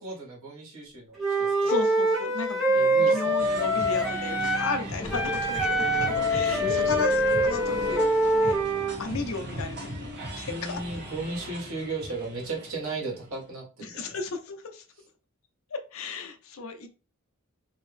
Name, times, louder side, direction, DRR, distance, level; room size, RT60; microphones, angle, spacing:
voice 1, 0.0-1.5 2.7-3.3 6.0-7.1 10.3-14.1, right 3 dB, 80° right, -3 dB, 1.7 m, -36 dB
Wind instrument woodwind instrument, 1.2-4.8 5.1-9.0, right 1 dB, ahead, 1.5 m, -24 dB
voice 2, 1.6-8.0 8.3-8.6 9.0-10.8 13.8-14.8 15.7-16.9, left 4 dB, 70° left, 6 dB, 0.6 m, -35 dB
sound 1, 3.4-13.5, equal, 55° right, 1.3 m, -38 dB
sound 2, 5.0-9.4, left 3 dB, 15° left, 0.5 m, -38 dB
3.0 x 2.7 x 3.2 m, 0.33 s
head